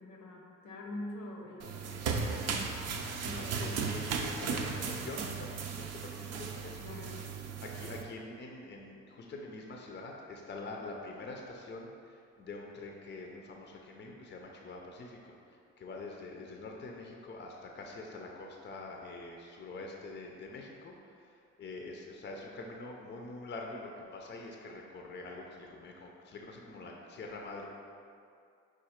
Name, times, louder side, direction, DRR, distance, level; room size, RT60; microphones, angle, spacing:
voice 1, 0.0-2.7 3.2-3.9 6.7-7.3, left 1 dB, 80° left, 0 dB, 0.8 m, -45 dB
sound 1, 1.6-8.0, right 5 dB, 60° right, 0.5 m, -36 dB
voice 2, 3.0-7.1 7.6-15.3 15.8-21.3 21.6-27.7, left 2 dB, 35° left, 0 dB, 0.5 m, -45 dB
4.8 x 2.5 x 4.3 m, 2.4 s
cardioid pair, 90°, 30 cm